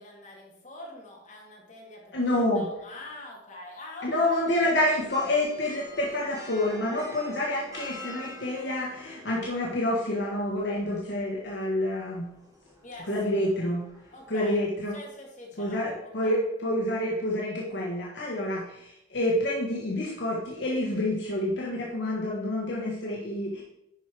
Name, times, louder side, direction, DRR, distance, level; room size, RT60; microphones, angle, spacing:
voice 1, 0.0-4.4 12.8-13.4 14.1-14.6 14.9-16.4, left 2 dB, 35° left, -3 dB, 2.4 m, -45 dB
voice 2, 2.1-2.7 4.0-12.3 13.1-13.8 14.3-15.0 15.6-23.6, left 1 dB, 60° left, -3 dB, 1.4 m, -28 dB
sound 1, 4.4-14.8, left 2 dB, 15° right, 2.2 m, -47 dB
11.0 x 4.8 x 4.6 m, 0.82 s
head